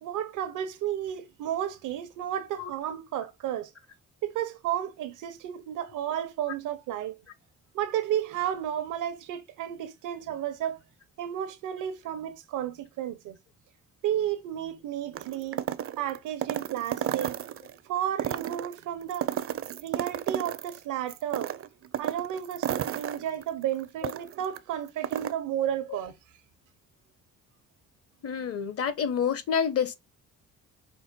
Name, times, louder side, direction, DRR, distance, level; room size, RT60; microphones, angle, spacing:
voice 1, 0.0-3.7 4.2-7.1 7.7-10.8 11.2-13.4 14.0-15.6 16.0-17.4 17.9-19.3 19.8-21.5 22.0-26.1, right 10 dB, 90° right, 0.9 m, -32 dB
sound 1, 15.1-17.7 18.1-20.8 21.1-24.6 24.9-25.3, right 10 dB, 50° right, 0.5 m, -32 dB
voice 2, 28.2-30.0, left 7 dB, 50° left, 0.9 m, -28 dB
5.6 x 2.3 x 4.1 m
cardioid pair, 90°, 30 cm